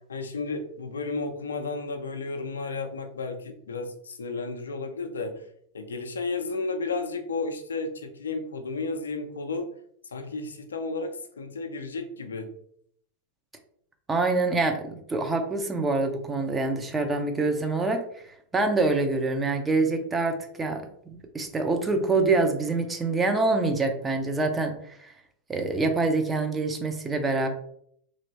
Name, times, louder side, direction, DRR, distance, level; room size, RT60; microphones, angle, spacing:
voice 1, 0.1-5.4 5.7-9.7 10.1-12.5, left 3 dB, 70° left, 6 dB, 0.4 m, -33 dB
voice 2, 14.1-18.0 18.5-25.1 25.5-27.5, right 3 dB, 15° right, 5 dB, 0.5 m, -25 dB
3.1 x 2.9 x 2.7 m, 0.67 s
figure-of-eight pair, 90°, 0 cm